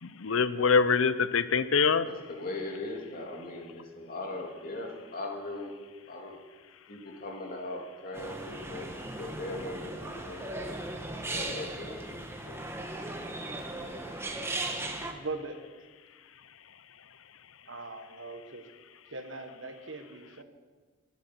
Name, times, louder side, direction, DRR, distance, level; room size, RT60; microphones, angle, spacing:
voice 1, 0.0-2.1, left 5 dB, 90° left, 14 dB, 0.7 m, -24 dB
voice 2, 2.1-5.7 6.0-6.4 6.9-10.7 11.2-12.6 13.7-13.9, left 2 dB, 45° left, 1 dB, 2.6 m, -40 dB
sound 1, 8.1-15.1, right 2 dB, 10° right, 1.2 m, -37 dB
voice 3, 15.1-15.6 17.7-18.7 19.1-20.4, right 3 dB, 70° right, 6 dB, 1.5 m, -40 dB
23.5 x 8.4 x 6.0 m, 1.4 s
head